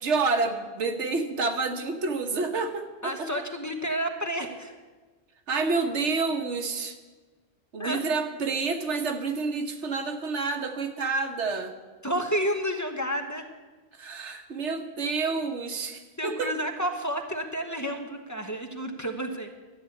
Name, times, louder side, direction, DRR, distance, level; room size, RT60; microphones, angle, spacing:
voice 1, 0.0-3.3 5.5-7.0 7.7-11.7 13.9-16.5, right 4 dB, 90° right, 6 dB, 1.4 m, -29 dB
voice 2, 3.0-4.7 7.8-8.0 12.0-13.4 15.2-15.4 16.2-19.5, equal, 15° left, 4 dB, 1.1 m, -30 dB
13.0 x 8.7 x 8.3 m, 1.3 s
omnidirectional pair, 1.2 m